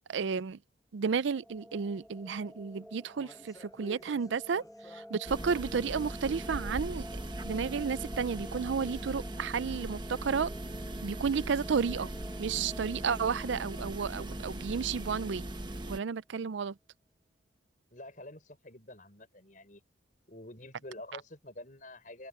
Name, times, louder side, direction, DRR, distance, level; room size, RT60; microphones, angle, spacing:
voice 1, 0.1-0.6 0.9-4.6 4.9-7.1 7.4-10.5 11.0-12.1 12.4-15.5 15.9-16.7, right 6 dB, 70° right, 0.4 m, -32 dB
sound 1, 1.0-15.9, equal, ahead, 3.4 m, -51 dB
sound 2, 2.0-2.2 2.5-5.8 6.2-7.1 7.4-7.5 8.2-8.3, left 1 dB, 20° left, 7.9 m, -54 dB
sound 3, 5.2-16.0, right 1 dB, 25° right, 1.1 m, -40 dB
voice 2, 17.9-19.8 20.3-22.3, left 1 dB, 40° left, 5.9 m, -48 dB
open air
head